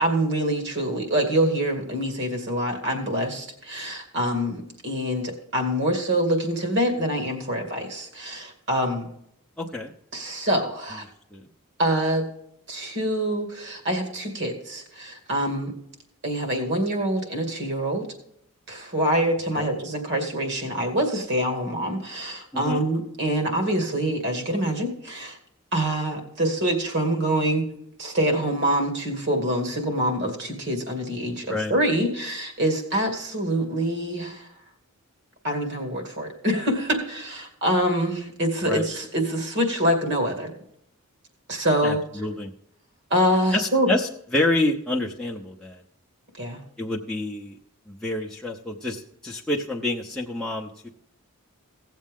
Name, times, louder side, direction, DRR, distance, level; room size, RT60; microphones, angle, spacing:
voice 1, 0.0-9.1 10.1-11.0 11.8-12.3 12.7-15.8 16.2-18.1 18.7-25.4 25.7-27.7 28.0-34.5 35.4-40.5 41.5-42.0 43.1-43.9 46.4-46.6, right 1 dB, 50° right, 3 dB, 2.3 m, -25 dB
voice 2, 9.6-9.9 11.3-11.5 19.6-19.7 22.5-22.8 31.5-31.7 38.6-38.8 41.8-42.5 43.5-45.8 46.8-47.6 47.9-50.9, left 2 dB, 5° left, -3 dB, 0.7 m, -28 dB
17.0 x 7.4 x 3.7 m, 0.74 s
head